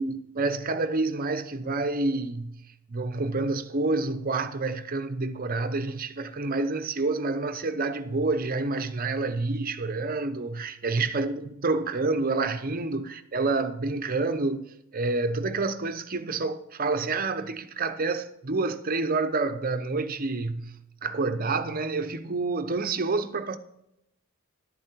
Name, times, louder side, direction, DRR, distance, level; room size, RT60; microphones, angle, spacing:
voice 1, 0.0-2.6 2.9-14.7 14.9-23.6, right 3 dB, 45° right, 0.8 m, -28 dB
12.0 x 8.7 x 4.5 m
head